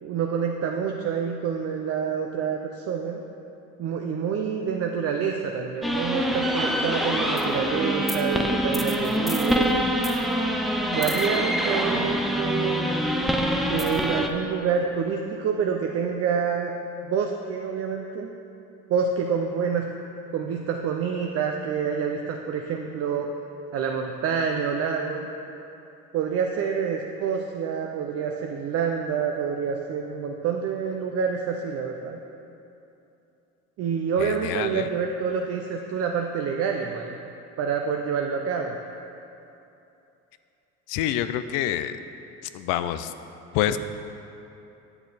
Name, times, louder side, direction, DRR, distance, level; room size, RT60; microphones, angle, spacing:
voice 1, 0.0-3.2 3.8-9.9 10.9-12.9 13.7-16.7 17.0-18.3 18.9-19.9 20.3-23.3 23.7-25.3 26.1-32.2 33.8-37.2 37.6-38.8, right 6 dB, 50° right, 2 dB, 0.6 m, -27 dB
sound 1, 5.8-14.3, equal, ahead, 0.5 m, -25 dB
voice 2, 34.2-34.9 40.9-42.0 42.5-43.1 43.5-43.8, left 11 dB, 90° left, 11 dB, 0.5 m, -27 dB
9.0 x 6.4 x 4.0 m, 2.8 s
cardioid pair, 115°, 31 cm